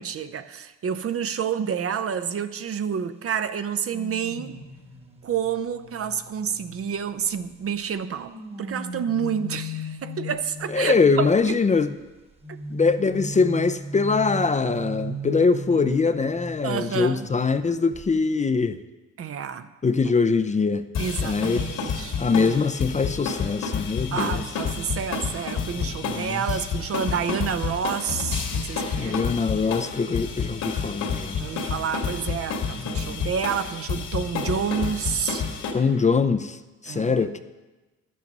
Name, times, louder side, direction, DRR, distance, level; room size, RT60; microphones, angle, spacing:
voice 1, 0.0-4.6 5.2-11.6 12.5-12.6 16.6-17.3 19.2-19.7 21.0-22.6 24.1-29.2 31.3-35.5 36.9-37.3, right 7 dB, 50° right, 0.7 m, -29 dB
sound 1, 3.9-7.5 8.1-11.4 12.4-17.6 17.9-18.2, right 1 dB, 20° right, 1.3 m, -37 dB
voice 2, 10.7-11.9 12.7-18.8 19.8-20.8 21.2-24.4 26.1-26.4 29.0-31.4 32.9-33.0 35.7-37.4, left 4 dB, 25° left, 0.5 m, -23 dB
sound 2, 20.9-35.7, left 5 dB, 75° left, 2.2 m, -30 dB
12.0 x 8.7 x 5.3 m
cardioid pair, 90°, 30 cm